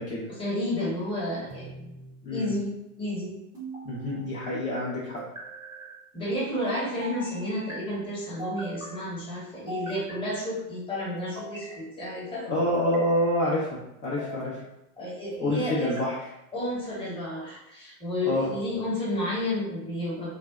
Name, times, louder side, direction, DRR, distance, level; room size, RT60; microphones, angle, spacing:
voice 1, 0.3-1.9 2.3-2.7 3.0-3.3 6.1-12.4 15.0-16.0 16.5-20.3, left 1 dB, 10° left, -7 dB, 1.0 m, -31 dB
sound 1, 1.5-2.2 3.5-4.3 5.2-5.9 7.0-7.8 8.4-9.0 9.7-10.5 11.2-11.8 12.5-13.5 14.0-14.6 15.3-16.1, right 2 dB, 10° right, 0.6 m, -41 dB
voice 2, 3.8-5.2 12.4-14.6 15.4-16.2 18.2-18.5, left 1 dB, 35° left, -8 dB, 0.7 m, -27 dB
2.6 x 2.1 x 2.3 m, 0.85 s
hypercardioid pair, 100°, 44 cm